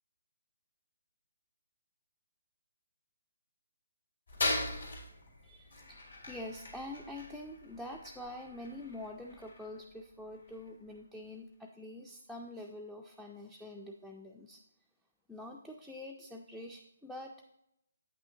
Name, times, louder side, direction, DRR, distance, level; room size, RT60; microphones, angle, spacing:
sound 1, 4.3-11.0, left 2 dB, 80° left, 2.4 m, -40 dB
voice 1, 5.4-14.6 15.3-17.6, left 1 dB, ahead, 0 dB, 0.3 m, -46 dB
8.3 x 6.1 x 2.7 m, 0.81 s
hypercardioid pair, 155°, 0 cm